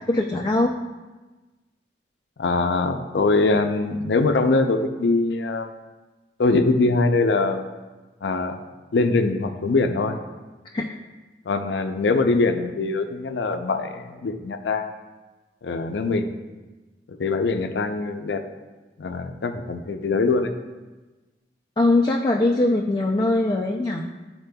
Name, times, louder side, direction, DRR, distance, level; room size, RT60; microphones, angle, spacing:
voice 1, 0.1-0.7 10.7-10.9 21.8-24.1, left 2 dB, 25° left, 1 dB, 0.3 m, -21 dB
voice 2, 2.4-5.7 6.4-7.6 8.2-8.6 8.9-10.2 11.5-14.9 15.6-16.3 17.1-18.4 19.0-20.5, left 3 dB, 90° left, 7 dB, 0.5 m, -22 dB
11.0 x 4.3 x 2.2 m, 1.2 s
head